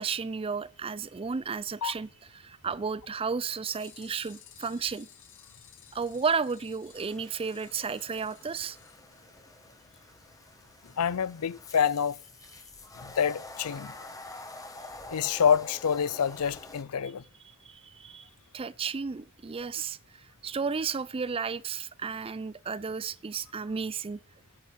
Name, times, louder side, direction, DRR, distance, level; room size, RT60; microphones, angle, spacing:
voice 1, 0.0-5.1 5.9-8.8 17.6-24.2, right 5 dB, 25° right, 0.4 m, -33 dB
sound 1, 3.6-9.7 10.0-10.1 10.4-10.5 10.9-11.0 11.3-11.4, left 9 dB, 60° left, 2.2 m, -56 dB
sound 2, 6.9-16.8, left 2 dB, 15° left, 1.5 m, -47 dB
voice 2, 11.0-12.2 13.0-13.9 15.1-17.2, left 7 dB, 85° left, 0.5 m, -27 dB
10.5 x 8.3 x 5.1 m
head